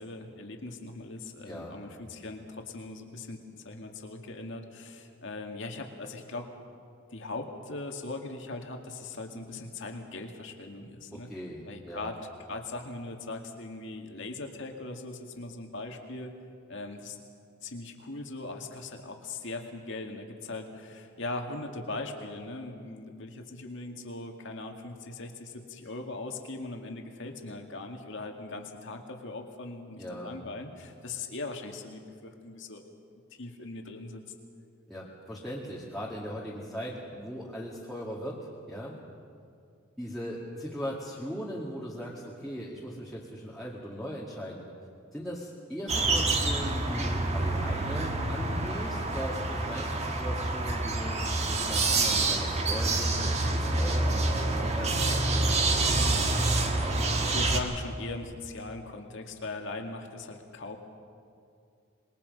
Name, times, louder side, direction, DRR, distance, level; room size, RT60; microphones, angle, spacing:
voice 1, 0.0-6.5 7.1-11.3 11.6-16.3 16.7-17.2 17.6-32.9 33.4-34.2 57.2-60.8, left 2 dB, 60° left, 3 dB, 2.2 m, -40 dB
voice 2, 1.5-1.8 11.3-12.1 30.0-30.5 34.9-38.4 38.7-39.0 40.0-44.7 45.1-54.3 54.7-55.6, equal, ahead, -7 dB, 2.1 m, -39 dB
sound 1, 45.9-57.6, right 2 dB, 30° right, 1.6 m, -27 dB
26.5 x 21.5 x 5.4 m, 2.4 s
head